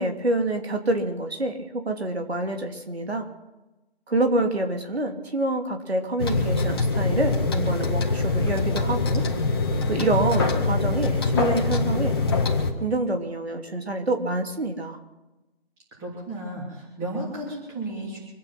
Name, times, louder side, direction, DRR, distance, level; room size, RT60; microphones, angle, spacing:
voice 1, 0.0-3.3 4.1-9.2 9.9-12.2 12.8-15.0, right 2 dB, 75° right, 4 dB, 2.9 m, -27 dB
sound 1, 6.2-12.7, left 3 dB, 25° left, 1.7 m, -24 dB
voice 2, 16.0-18.2, right 1 dB, 10° right, -5 dB, 3.1 m, -33 dB
25.5 x 9.5 x 5.9 m, 1.0 s
figure-of-eight pair, 165°, 32 cm